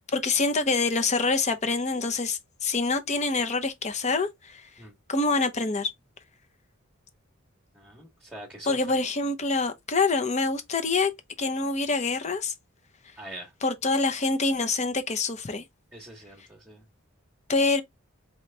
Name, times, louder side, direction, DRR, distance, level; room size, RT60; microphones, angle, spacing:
voice 1, 0.1-4.7 5.1-5.9 8.7-11.1 11.4-12.5 13.6-15.6 17.5-17.8, left 3 dB, 35° left, 0.7 m, -26 dB
voice 2, 7.7-9.0 13.2-13.5 15.9-16.8, right 1 dB, 5° right, 1.1 m, -43 dB
4.3 x 3.1 x 3.2 m
head